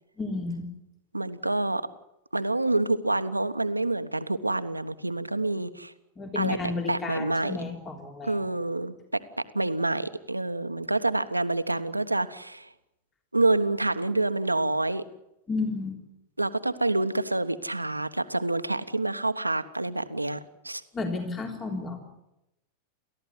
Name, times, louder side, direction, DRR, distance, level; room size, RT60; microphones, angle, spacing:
voice 1, 0.2-0.7 6.2-8.4 15.5-16.0 20.9-22.1, left 3 dB, 25° left, 3 dB, 3.6 m, -32 dB
voice 2, 1.1-1.9 2.3-5.9 6.3-6.6 6.9-7.6 8.2-12.7 13.3-15.0 16.4-20.4 20.6-20.8, right 2 dB, 85° right, 11 dB, 1.2 m, -27 dB
30.0 x 14.5 x 9.5 m, 0.88 s
figure-of-eight pair, 90°, 0 cm